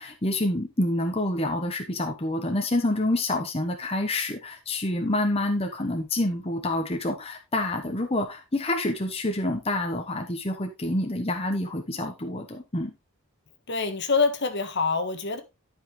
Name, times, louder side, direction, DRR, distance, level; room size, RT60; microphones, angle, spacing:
voice 1, 0.0-12.9, left 1 dB, 25° left, 1.0 m, -27 dB
voice 2, 13.7-15.4, left 4 dB, 50° left, 1.3 m, -25 dB
12.0 x 5.7 x 3.2 m
head